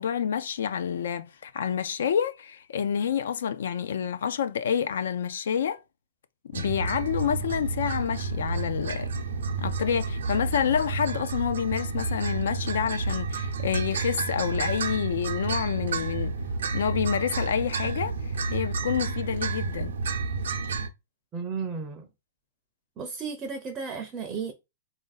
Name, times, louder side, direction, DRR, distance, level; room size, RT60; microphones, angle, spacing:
voice 1, 0.0-5.8 6.5-9.1 9.6-16.3 16.7-19.9, left 8 dB, 70° left, 0.4 m, -28 dB
sound 1, 6.5-20.9, right 4 dB, 85° right, 0.6 m, -30 dB
voice 2, 21.3-22.1 23.0-24.5, right 5 dB, 15° right, 0.5 m, -34 dB
3.8 x 2.5 x 4.0 m
hypercardioid pair, 170°, 0 cm